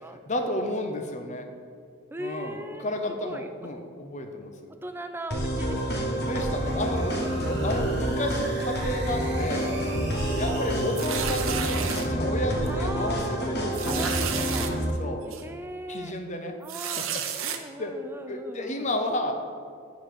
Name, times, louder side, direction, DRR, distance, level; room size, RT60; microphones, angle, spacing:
voice 1, 0.3-1.5 2.2-4.7 6.2-9.7 10.3-14.2 15.0-15.2 15.9-16.5 16.8-17.2 17.8-17.9 18.3-19.3, left 1 dB, 35° left, 5 dB, 0.7 m, -32 dB
voice 2, 2.1-3.5 4.8-6.1 10.4-10.8 12.7-13.5 13.9-14.8 15.2-16.1 16.6-17.1 17.4-18.9, right 1 dB, 10° right, 7 dB, 0.3 m, -39 dB
sound 1, 5.3-14.9, right 1 dB, 50° left, 1.1 m, -28 dB
sound 2, 5.5-11.0, right 3 dB, 55° right, 1.1 m, -44 dB
sound 3, 11.0-12.1 12.7-12.8 13.1-13.2 13.7-14.7 15.3-15.4 16.6-17.6, right 8 dB, 85° right, 0.6 m, -32 dB
7.5 x 4.0 x 6.6 m, 2.2 s
head